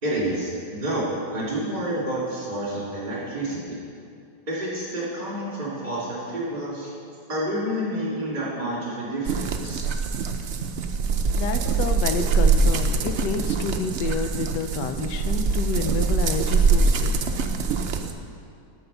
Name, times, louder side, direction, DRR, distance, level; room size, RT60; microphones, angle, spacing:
voice 1, 0.0-3.8 4.5-6.9 7.3-9.9, right 1 dB, 25° right, -7 dB, 3.0 m, -29 dB
sound 1, 9.2-18.1, right 4 dB, 90° right, 0.6 m, -23 dB
voice 2, 11.3-17.2, left 6 dB, 70° left, 8 dB, 1.2 m, -29 dB
12.0 x 6.9 x 5.6 m, 2.4 s
omnidirectional pair, 2.0 m